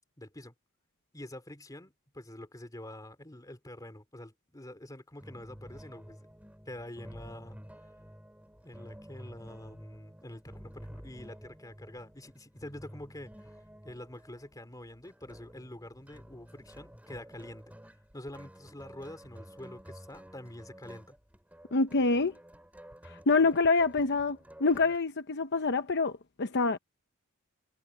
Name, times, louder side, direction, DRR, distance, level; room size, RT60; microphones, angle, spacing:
voice 1, 0.2-0.5 1.1-6.3 6.7-7.6 8.6-17.8 18.1-21.2, left 1 dB, 15° left, 2.9 m, -46 dB
sound 1, 5.2-25.0, equal, 5° right, 3.5 m, -51 dB
voice 2, 21.7-22.3 23.0-26.8, left 3 dB, 55° left, 0.8 m, -26 dB
head